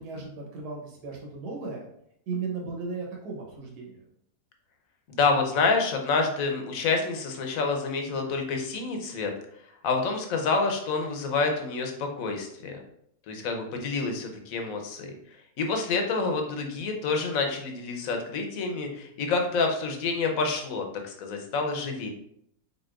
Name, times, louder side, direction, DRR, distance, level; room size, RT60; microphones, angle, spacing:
voice 1, 0.0-1.8 2.3-4.0, right 4 dB, 85° right, -1 dB, 1.5 m, -36 dB
voice 2, 5.1-9.3 9.8-12.8 13.3-15.2 15.6-22.1, left 4 dB, 65° left, 3 dB, 1.1 m, -28 dB
5.1 x 4.0 x 2.4 m, 0.71 s
omnidirectional pair, 1.7 m